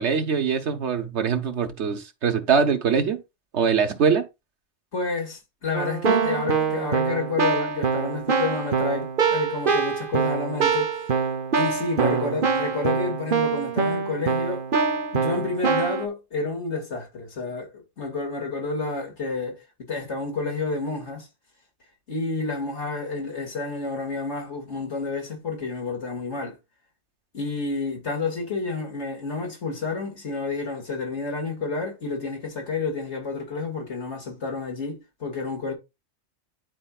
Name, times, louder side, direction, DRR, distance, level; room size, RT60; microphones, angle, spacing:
voice 1, 0.0-3.2 3.5-4.3, right 6 dB, 75° right, 1.4 m, -23 dB
voice 2, 4.9-10.9 11.5-14.7 15.1-21.3 22.1-26.6 27.3-35.7, left 3 dB, 80° left, 2.4 m, -30 dB
Keyboard (musical), 5.7-16.1, right 5 dB, 50° right, 1.1 m, -24 dB
11.0 x 4.4 x 2.4 m
omnidirectional pair, 1.2 m